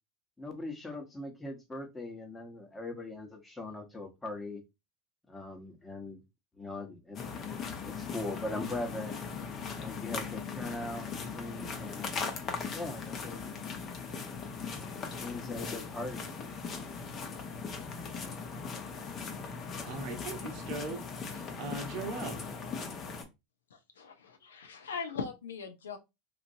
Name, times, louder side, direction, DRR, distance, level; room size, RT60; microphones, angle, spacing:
voice 1, 0.4-4.6 5.3-6.2 6.6-7.2 7.4-9.1 9.7-12.2 12.7-13.6 15.2-16.3, left 2 dB, 10° left, 1.0 m, -40 dB
sound 1, 7.2-23.3, left 5 dB, 35° left, 0.8 m, -39 dB
voice 2, 19.8-21.0 21.3-22.4, right 4 dB, 50° right, 0.8 m, -39 dB
voice 3, 24.0-26.0, left 5 dB, 80° left, 0.5 m, -40 dB
2.9 x 2.5 x 2.6 m
hypercardioid pair, 85°, 0 cm